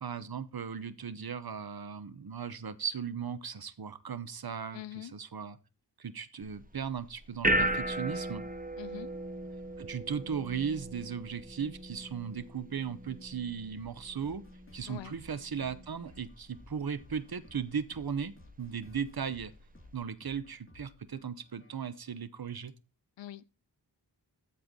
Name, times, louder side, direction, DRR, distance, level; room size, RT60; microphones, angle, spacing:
voice 1, 0.0-5.6 6.0-8.4 9.8-14.4 14.7-19.5 19.9-22.7, right 7 dB, 55° right, 1.0 m, -37 dB
voice 2, 4.7-5.1 8.8-9.1 14.9-15.1 23.2-23.6, left 11 dB, 85° left, 0.6 m, -44 dB
sound 1, 6.4-20.0, right 1 dB, 20° right, 0.8 m, -38 dB
sound 2, 13.8-22.1, left 3 dB, 30° left, 2.3 m, -58 dB
13.5 x 4.5 x 3.8 m
wide cardioid pair, 65°, 43 cm